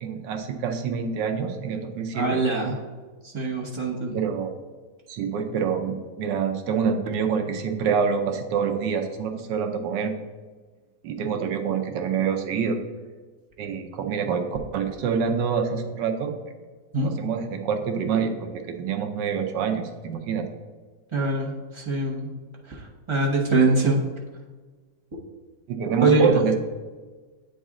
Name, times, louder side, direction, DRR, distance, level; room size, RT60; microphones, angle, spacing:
voice 1, 0.0-2.4 4.1-4.5 5.1-10.1 11.0-12.8 13.6-14.5 14.7-16.4 17.0-20.5 25.7-26.6, right 6 dB, 75° right, 5 dB, 1.3 m, -26 dB
voice 2, 2.1-2.8 3.2-4.2 16.9-17.2 21.1-22.3 22.6-24.0 26.0-26.4, right 3 dB, 30° right, -3 dB, 0.5 m, -23 dB
8.4 x 4.1 x 3.6 m, 1.4 s
omnidirectional pair, 2.0 m